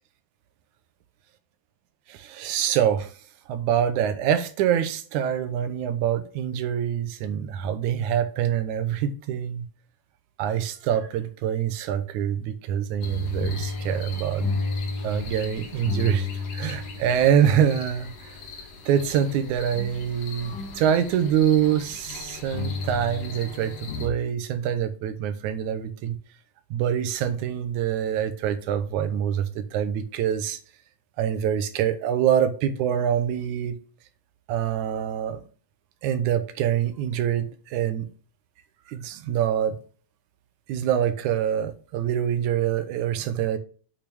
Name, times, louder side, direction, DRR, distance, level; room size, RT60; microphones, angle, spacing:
voice 1, 2.1-3.1 3.5-9.7 10.4-14.5 15.0-16.3 16.5-18.4 18.9-26.2 26.7-30.6 31.2-33.8 34.5-35.4 36.0-38.1 38.9-39.8 40.7-43.6, right 9 dB, 75° right, 2.1 m, -25 dB
sound 1, 13.0-24.1, left 4 dB, 80° left, 3.3 m, -34 dB
8.4 x 5.7 x 3.4 m
omnidirectional pair, 3.7 m